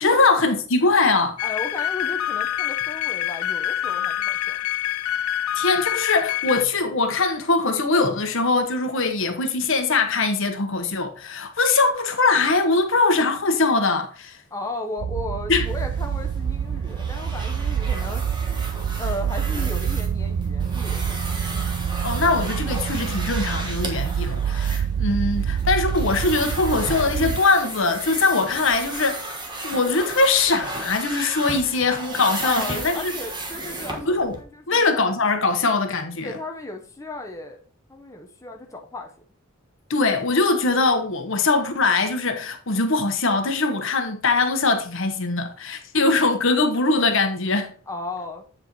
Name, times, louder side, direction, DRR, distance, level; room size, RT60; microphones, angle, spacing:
voice 1, 0.0-1.4 5.5-14.4 15.5-15.7 22.0-29.2 29.6-33.1 34.0-34.3 34.7-36.4 39.9-47.7, left 3 dB, 65° left, 1.1 m, -21 dB
sound 1, 1.4-6.6, left 12 dB, 85° left, 0.3 m, -26 dB
voice 2, 1.4-4.6 14.5-18.3 19.0-21.6 32.4-35.0 36.2-37.6 37.9-39.1 47.9-48.5, left 2 dB, 15° left, 0.8 m, -35 dB
sound 2, 15.0-27.4, right 8 dB, 80° right, 0.4 m, -26 dB
sound 3, 15.6-34.4, right 2 dB, 20° right, 1.4 m, -35 dB
8.0 x 4.4 x 4.5 m
head